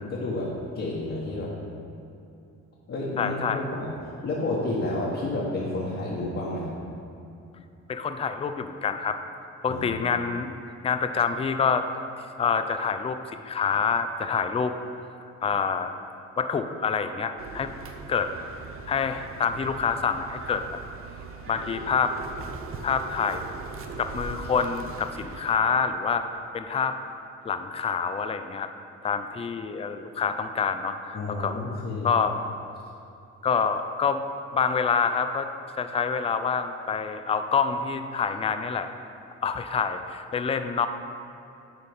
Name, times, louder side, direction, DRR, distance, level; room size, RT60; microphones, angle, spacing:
voice 1, 0.0-1.5 2.9-3.9 4.2-6.7 9.7-9.8 31.1-32.1, left 2 dB, 45° left, -6 dB, 1.1 m, -30 dB
voice 2, 3.2-3.6 7.9-9.2 9.6-10.6 10.8-11.9 12.2-14.7 15.4-15.9 16.4-17.7 18.1-18.3 18.9-20.6 21.5-22.1 22.8-23.4 24.0-26.2 26.5-26.9 27.4-28.7 29.0-31.5 32.0-32.4 33.4-34.2 34.5-35.5 35.8-38.9 39.4-40.9, left 6 dB, 20° left, 9 dB, 0.3 m, -26 dB
sound 1, 17.4-25.6, right 4 dB, 45° right, 0.6 m, -40 dB
9.7 x 4.1 x 3.5 m, 2.7 s
cardioid pair, 90°, 30 cm